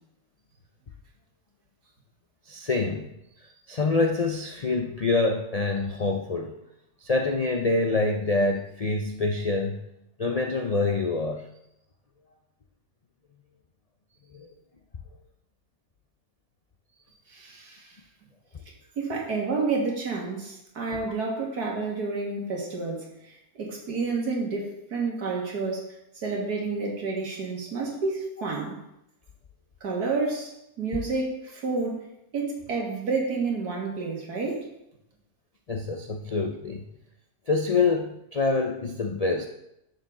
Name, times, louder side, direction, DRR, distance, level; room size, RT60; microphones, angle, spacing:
voice 1, 2.5-3.1 3.4-6.6 7.0-9.9 10.2-11.5 14.3-14.5 35.7-36.9 37.5-39.5, left 3 dB, 75° left, 4 dB, 0.3 m, -26 dB
voice 2, 17.3-17.9 19.0-25.9 26.2-28.8 29.8-32.1 32.3-34.7, right 4 dB, 90° right, -1 dB, 2.4 m, -30 dB
9.6 x 6.8 x 3.7 m, 0.84 s
omnidirectional pair, 1.6 m